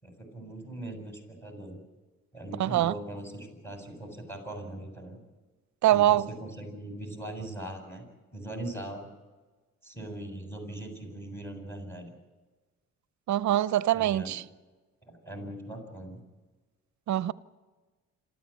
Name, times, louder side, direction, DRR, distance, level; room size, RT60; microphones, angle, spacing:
voice 1, 0.0-1.8 2.3-5.2 5.9-8.0 8.3-9.1 9.8-12.1 13.9-14.4 15.0-16.2, right 1 dB, 10° left, 7.5 m, -40 dB
voice 2, 2.6-2.9 5.8-6.3 13.3-14.4 17.1-17.3, right 13 dB, 70° right, 0.8 m, -24 dB
27.5 x 14.0 x 8.5 m
cardioid pair, 90°, 30 cm